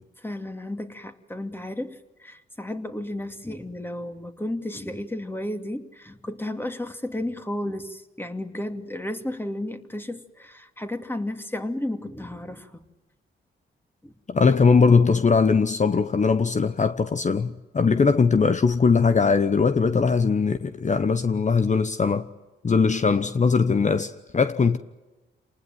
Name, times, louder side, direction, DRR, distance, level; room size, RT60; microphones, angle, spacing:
voice 1, 0.2-12.8 14.0-14.1, left 1 dB, 10° left, 2.6 m, -33 dB
voice 2, 14.3-22.3 22.6-24.8, left 5 dB, 35° left, 1.0 m, -20 dB
28.5 x 19.5 x 9.3 m
cardioid pair, 75°, 21 cm